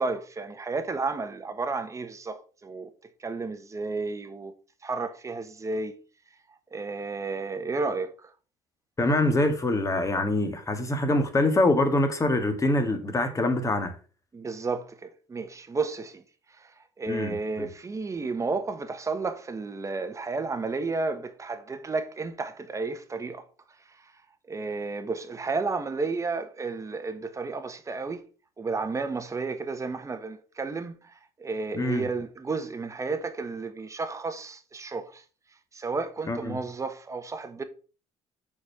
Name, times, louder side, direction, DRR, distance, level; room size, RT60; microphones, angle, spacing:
voice 1, 0.0-2.9 3.2-4.5 4.8-5.9 6.7-8.3 14.3-16.2 16.6-16.7 17.0-23.4 24.5-28.2 28.6-31.1 31.4-35.2 35.7-37.6, right 4 dB, 25° right, 1.2 m, -32 dB
voice 2, 9.0-13.9 17.1-17.7 31.7-32.1 36.3-36.6, left 2 dB, 25° left, 1.8 m, -25 dB
6.3 x 4.6 x 5.8 m
supercardioid pair, 90°, 12 cm